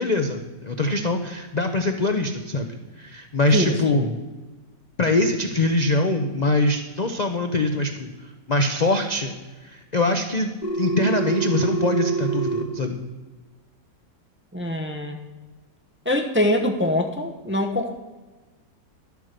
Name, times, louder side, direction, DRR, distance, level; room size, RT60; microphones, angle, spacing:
voice 1, 0.0-4.1 5.0-9.3 9.6-10.5 10.8-13.0, left 2 dB, 65° left, 6 dB, 0.4 m, -23 dB
voice 2, 3.5-4.1 14.5-15.2 16.0-17.9, left 1 dB, 15° right, 3 dB, 0.4 m, -24 dB
Telephone, 10.6-12.6, right 4 dB, 25° left, 1.2 m, -26 dB
12.0 x 8.2 x 6.5 m, 1.2 s
omnidirectional pair, 1.9 m